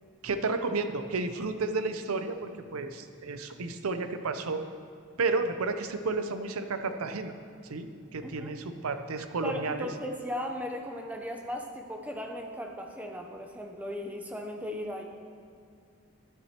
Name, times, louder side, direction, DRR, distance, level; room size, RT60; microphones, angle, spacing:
voice 1, 0.2-4.6 5.2-7.3 7.6-9.9, right 3 dB, 90° right, 9 dB, 0.6 m, -32 dB
voice 2, 8.2-8.5 9.4-15.0, left 1 dB, 5° right, 2 dB, 0.6 m, -37 dB
12.0 x 8.8 x 2.9 m, 2.4 s
head